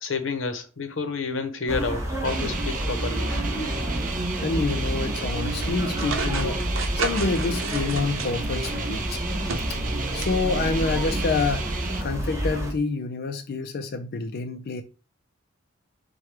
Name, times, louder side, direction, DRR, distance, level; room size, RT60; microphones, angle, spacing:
voice 1, 0.0-3.3, left 4 dB, 75° left, 0.8 m, -29 dB
sound 1, 1.7-12.7, equal, 15° right, 1.0 m, -29 dB
sound 2, 2.2-12.0, right 4 dB, 45° right, 0.6 m, -33 dB
voice 2, 4.4-6.6 6.9-9.2 9.7-9.8 10.1-11.7 12.0-14.8, left 3 dB, 50° left, 0.4 m, -27 dB
sound 3, 6.0-8.8 9.2-10.4 10.6-10.7 11.9-12.0, right 4 dB, 85° right, 0.7 m, -33 dB
4.8 x 2.2 x 4.5 m
head